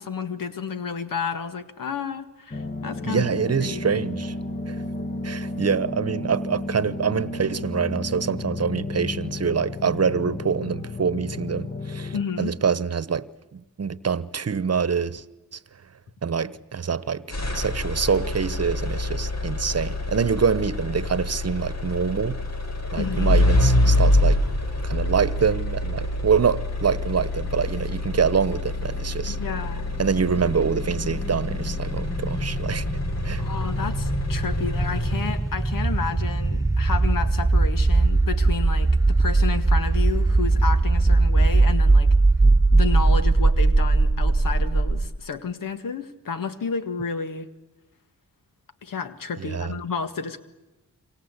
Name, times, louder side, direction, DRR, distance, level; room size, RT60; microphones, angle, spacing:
voice 1, 0.0-3.3 3.6-3.8 12.1-12.5 22.9-23.4 29.3-29.9 33.4-42.1 42.7-47.5 48.8-50.4, left 5 dB, 80° left, 1.8 m, -31 dB
sound 1, 2.5-12.2, left 2 dB, 30° left, 1.8 m, -32 dB
voice 2, 3.1-4.3 4.7-4.8 5.2-15.2 15.5-15.6 16.2-17.2 17.5-22.4 22.9-24.4 24.8-29.4 30.0-32.9 33.2-33.4 49.4-49.7, right 6 dB, 50° right, 1.1 m, -25 dB
sound 2, 17.3-35.6, left 1 dB, 50° left, 4.4 m, -26 dB
sound 3, 29.2-45.1, right 3 dB, 10° right, 1.5 m, -21 dB
27.5 x 24.5 x 8.3 m
cardioid pair, 50°, 33 cm